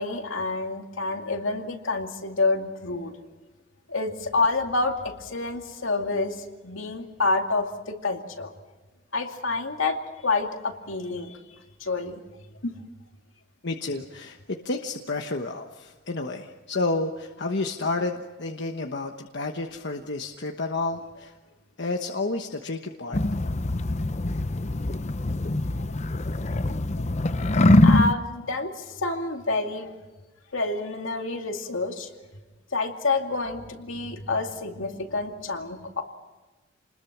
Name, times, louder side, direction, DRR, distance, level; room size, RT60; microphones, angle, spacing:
voice 1, 0.0-3.2 3.9-8.5 9.1-11.4 11.8-12.2 12.6-12.7 25.7-25.9 27.8-29.9 30.5-32.1 32.7-36.0, left 3 dB, 80° left, 3 dB, 2.4 m, -28 dB
voice 2, 13.6-21.4 21.8-23.2, left 2 dB, 60° left, 3 dB, 1.2 m, -30 dB
sound 1, 23.1-28.1, left 2 dB, 35° left, 0.7 m, -23 dB
28.5 x 21.0 x 6.1 m, 1.2 s
head